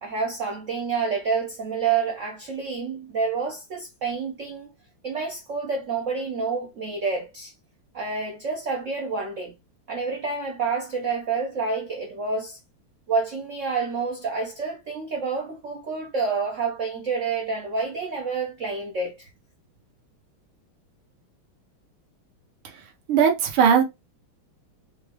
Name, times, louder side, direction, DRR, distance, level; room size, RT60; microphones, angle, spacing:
voice 1, 0.0-4.7 5.0-7.5 7.9-9.5 9.9-12.6 13.1-19.3, right 4 dB, 65° right, 0.7 m, -28 dB
voice 2, 23.1-23.8, right 7 dB, 85° right, 1.8 m, -18 dB
5.2 x 2.3 x 3.1 m
omnidirectional pair, 2.3 m